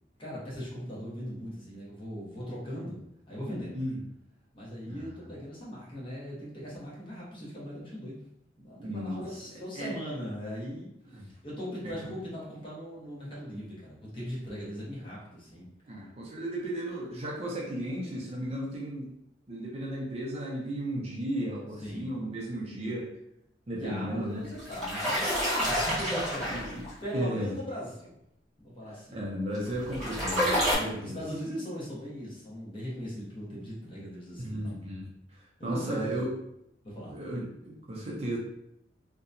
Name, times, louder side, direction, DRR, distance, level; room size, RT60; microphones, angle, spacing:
voice 1, 0.2-3.8 4.5-8.2 8.6-15.7 21.8-22.3 23.8-28.2 28.6-29.2 30.8-34.8 35.6-36.3 36.8-37.1, equal, 30° left, -6 dB, 0.9 m, -39 dB
voice 2, 4.9-5.3 8.8-9.4 9.7-10.0 11.1-11.3 11.8-12.1 15.8-19.1 19.5-23.1 23.7-24.5 26.4-26.8 27.1-27.5 28.9-31.2 34.4-36.3 37.1-38.4, right 1 dB, 35° right, -3 dB, 0.5 m, -35 dB
sound 1, 24.4-26.9 29.5-30.8, equal, 5° left, 1.2 m, -28 dB
2.7 x 2.1 x 2.5 m, 0.79 s
head